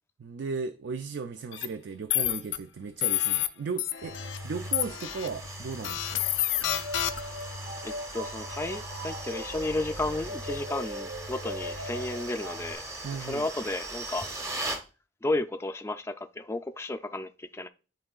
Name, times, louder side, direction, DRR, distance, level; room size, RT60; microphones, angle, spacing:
voice 1, 0.2-4.2 4.4-6.2 13.0-13.5, right 4 dB, 70° right, 0.4 m, -36 dB
sound 1, 1.5-1.7 2.1-2.6 3.0-3.5 3.8-4.4 4.7-5.3 5.8-7.4, left 13 dB, 80° left, 0.5 m, -28 dB
sound 2, 4.0-14.8, right 1 dB, 20° right, 0.8 m, -40 dB
sound 3, 4.0-12.7, equal, 90° right, 1.1 m, -40 dB
voice 2, 7.8-12.8 13.1-14.3 15.2-17.7, left 2 dB, 15° left, 0.4 m, -33 dB
11.0 x 3.8 x 2.3 m
head